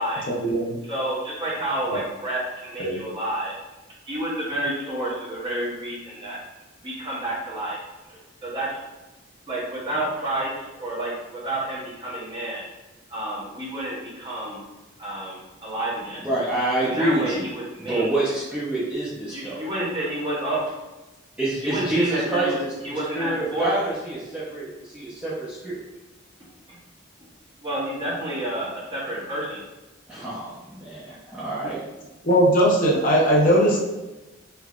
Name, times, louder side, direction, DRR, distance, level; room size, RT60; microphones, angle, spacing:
voice 1, 0.3-0.8 1.9-2.0 2.8-3.0 32.2-33.8, equal, 45° left, -3 dB, 0.8 m, -19 dB
voice 2, 0.9-3.6 4.0-6.4 6.8-7.8 8.1-8.8 9.5-12.7 13.1-14.6 15.0-16.2 16.8-18.2 19.3-20.6 21.6-22.6 22.8-23.7 26.7-26.8 27.6-29.6, right 1 dB, 25° right, -6 dB, 1.0 m, -29 dB
voice 3, 16.2-17.5 17.8-19.6 21.4-25.8 30.1-31.8, right 1 dB, 5° right, -10 dB, 0.6 m, -27 dB
3.4 x 3.3 x 2.5 m, 1.1 s
head